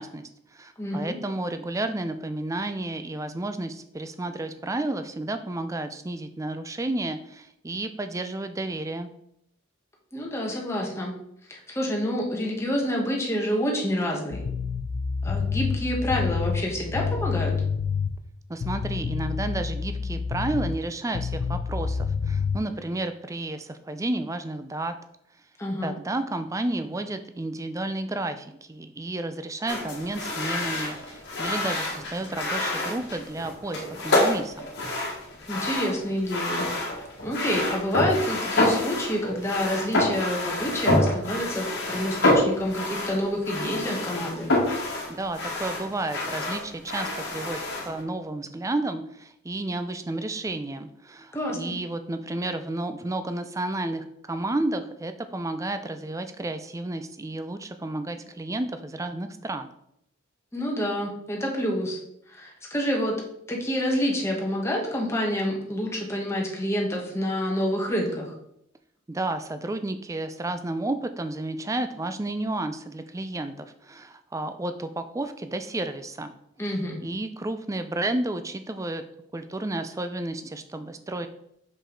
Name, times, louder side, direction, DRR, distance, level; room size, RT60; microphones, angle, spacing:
voice 1, 0.0-9.1 18.5-25.0 25.8-34.7 45.2-59.7 69.1-76.3 77.0-79.0 79.3-81.3, right 2 dB, 15° right, 9 dB, 0.4 m, -31 dB
voice 2, 0.8-1.2 10.1-11.1 11.5-14.4 15.2-17.5 25.6-25.9 35.5-36.7 37.2-44.5 51.3-51.8 60.5-62.0 62.3-63.1 63.5-68.3 76.6-77.0, equal, 15° left, -1 dB, 1.3 m, -28 dB
sound 1, 14.3-18.2 18.6-20.8 21.1-22.6, left 5 dB, 80° left, 0.4 m, -28 dB
sound 2, 29.7-48.0, left 1 dB, 55° left, 1.5 m, -27 dB
6.1 x 5.2 x 3.8 m, 0.76 s
head